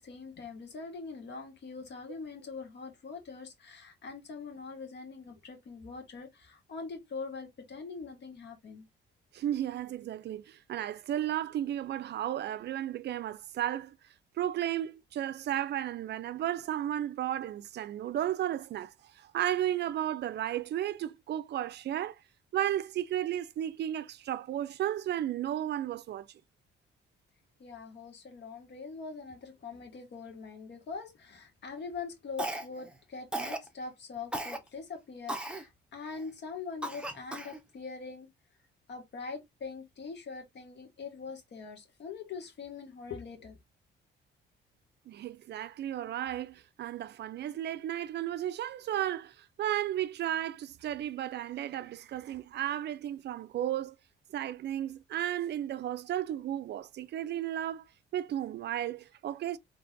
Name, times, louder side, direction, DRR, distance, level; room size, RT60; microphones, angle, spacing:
voice 1, 0.0-8.8 27.6-38.3 38.9-43.6, left 4 dB, 60° left, 1.7 m, -43 dB
voice 2, 9.3-14.0 14.4-22.2 22.5-26.3 45.1-53.9 54.3-57.8 58.1-59.6, right 11 dB, 60° right, 0.4 m, -34 dB
Cough, 32.4-32.9 33.3-33.7 34.3-34.6 35.3-35.6 36.2-36.3 36.8-37.6, right 1 dB, 5° right, 0.9 m, -36 dB
4.2 x 3.3 x 2.6 m
cardioid pair, 90°, 20 cm